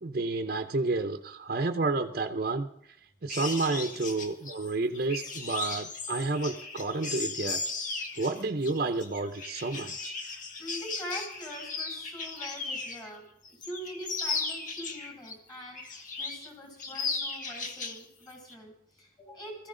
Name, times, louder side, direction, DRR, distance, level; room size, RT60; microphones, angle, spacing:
voice 1, 0.0-3.0 3.2-7.6 8.2-10.2, right 3 dB, 55° right, 5 dB, 0.7 m, -30 dB
sound 1, 3.3-13.1 13.4-15.3 15.7-16.5 16.8-18.0 18.3-18.5, left 4 dB, 50° left, 1.5 m, -36 dB
voice 2, 10.2-19.7, equal, 25° left, 0 dB, 6.7 m, -43 dB
21.0 x 14.5 x 3.8 m, 0.75 s
head